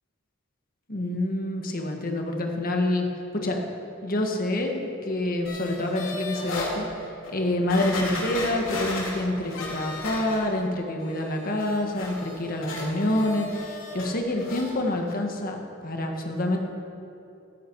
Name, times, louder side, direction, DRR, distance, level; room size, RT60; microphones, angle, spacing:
voice 1, 0.9-3.1 3.3-3.6 4.0-16.6, left 1 dB, 45° left, 2 dB, 1.6 m, -27 dB
sound 1, 5.4-6.7 7.2-7.3 7.7-10.7 11.0-14.1 14.4-14.7 15.1-15.2, left 2 dB, 80° left, 3.4 m, -35 dB
14.5 x 14.5 x 4.7 m, 2.8 s
head